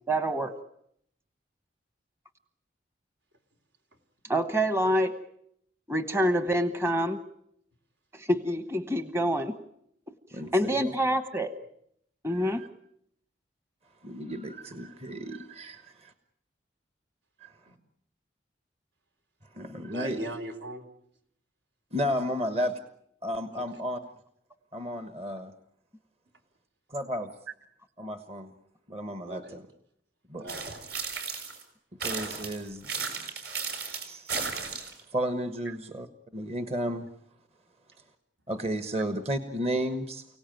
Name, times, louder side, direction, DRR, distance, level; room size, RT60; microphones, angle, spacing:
voice 1, 0.1-0.5 4.3-5.1 5.9-7.2 8.1-9.6 10.5-11.5 12.2-12.6, equal, 15° right, 9 dB, 1.1 m, -26 dB
voice 2, 10.3-10.9 12.3-12.7 14.0-16.1 17.4-17.5 19.5-20.2 21.9-22.7 23.2-24.0 24.7-25.5 26.9-27.3 28.0-28.5 28.9-29.6 30.3-30.5 32.0-34.4 35.1-36.1 36.3-37.1 38.5-40.3, equal, 35° right, 9 dB, 1.3 m, -33 dB
voice 3, 19.9-20.9 23.5-23.6 29.3-29.6 30.4-31.0, right 1 dB, 75° right, 5 dB, 3.9 m, -39 dB
sound 1, 30.5-31.6 32.0-35.0, right 5 dB, 60° right, 6.3 m, -34 dB
29.5 x 18.0 x 9.2 m, 0.75 s
head